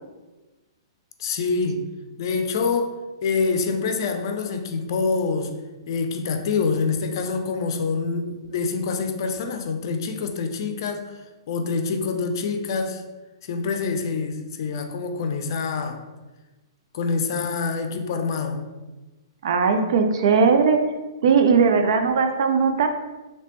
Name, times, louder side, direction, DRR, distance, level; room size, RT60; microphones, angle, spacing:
voice 1, 1.2-1.8 2.2-3.0 3.2-5.5 5.9-11.1 11.5-13.0 13.4-16.0 16.9-18.6, left 4 dB, 55° left, 6 dB, 0.5 m, -26 dB
voice 2, 19.4-20.8 21.2-22.9, right 5 dB, 65° right, 6 dB, 0.5 m, -18 dB
3.2 x 2.9 x 3.0 m, 1.1 s
hypercardioid pair, 130°, 3 cm